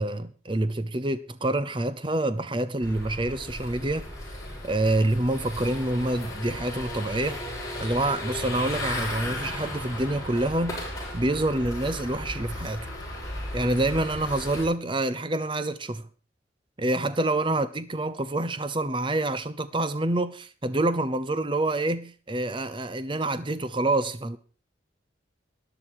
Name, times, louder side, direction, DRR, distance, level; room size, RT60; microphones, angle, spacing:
voice 1, 0.0-4.1 4.6-7.4 7.8-10.8 11.1-12.9 13.5-16.1 16.8-24.4, right 2 dB, 25° right, 0.7 m, -27 dB
sound 1, 2.8-14.7, left 1 dB, 15° left, 6.4 m, -35 dB
13.0 x 10.5 x 4.7 m
head